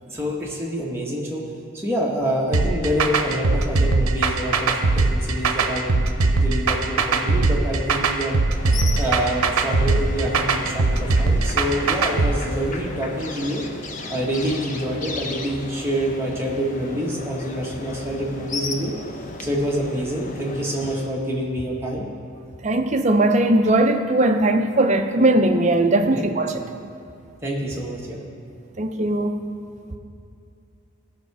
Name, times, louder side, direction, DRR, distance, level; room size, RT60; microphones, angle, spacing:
voice 1, 0.1-1.4 1.7-8.4 9.0-13.6 14.1-18.9 19.4-22.1 26.0-26.3 27.4-28.2, equal, 10° right, -4 dB, 1.3 m, -27 dB
sound 1, 2.5-12.3, right 3 dB, 90° right, 0.7 m, -20 dB
sound 2, 8.5-21.1, left 2 dB, 35° left, 0.7 m, -35 dB
voice 2, 22.6-26.6 28.8-29.4, right 1 dB, 35° right, 4 dB, 0.6 m, -19 dB
15.5 x 5.8 x 4.7 m, 2.6 s
head